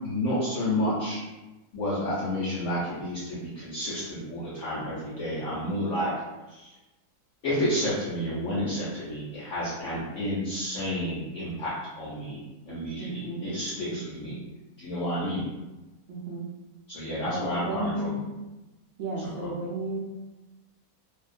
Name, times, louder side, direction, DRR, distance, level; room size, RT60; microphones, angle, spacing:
voice 1, 0.0-1.2 1.7-6.1 6.5-6.7 7.4-14.4 14.8-15.5 16.9-18.2 19.2-19.5, left 1 dB, 60° left, -8 dB, 0.8 m, -30 dB
voice 2, 13.0-13.5 13.9-14.0 14.2-14.3 16.1-16.5 17.3-18.3 19.0-20.0, right 2 dB, 70° right, -3 dB, 0.7 m, -33 dB
2.5 x 2.2 x 2.4 m, 1.1 s
omnidirectional pair, 1.7 m